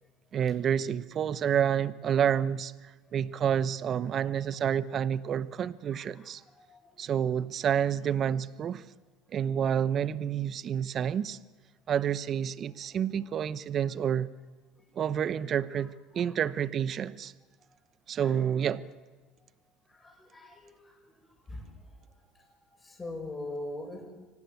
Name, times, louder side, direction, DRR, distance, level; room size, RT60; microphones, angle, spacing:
voice 1, 0.3-6.4 7.0-8.8 9.3-11.4 11.9-14.3 15.0-17.3 18.1-18.9, right 8 dB, 40° right, 0.9 m, -29 dB
voice 2, 5.9-6.3 18.2-18.4 20.0-20.8 21.5-21.6 23.0-24.1, left 2 dB, 20° left, 6.8 m, -40 dB
25.0 x 17.0 x 9.3 m
supercardioid pair, 100°, 0 cm